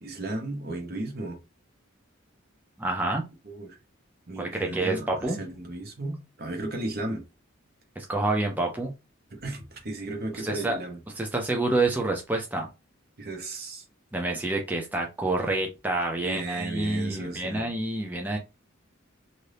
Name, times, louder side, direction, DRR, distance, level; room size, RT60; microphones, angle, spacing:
voice 1, 0.0-1.4 3.4-3.8 4.3-7.2 9.4-11.0 13.2-13.8 16.2-17.6, right 2 dB, 50° right, 0.9 m, -35 dB
voice 2, 2.8-3.2 4.4-5.4 8.0-8.9 10.3-10.8 11.2-12.7 14.1-18.4, right 2 dB, 10° right, 0.4 m, -28 dB
2.7 x 2.6 x 3.3 m
head